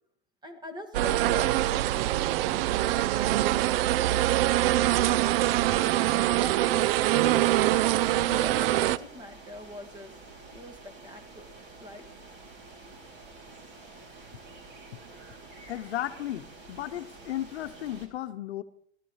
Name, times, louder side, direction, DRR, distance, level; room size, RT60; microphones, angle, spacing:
voice 1, 0.4-3.8 4.9-5.9 6.2-10.1 10.5-11.5 11.8-12.0, left 1 dB, 15° right, 7 dB, 1.8 m, -44 dB
sound 1, 0.9-9.0, right 15 dB, 60° right, 0.5 m, -24 dB
sound 2, 5.4-18.1, right 3 dB, 35° right, 2.8 m, -49 dB
voice 2, 15.7-18.6, left 13 dB, 75° left, 11 dB, 0.9 m, -35 dB
20.5 x 13.5 x 3.1 m, 0.71 s
hypercardioid pair, 120°, 33 cm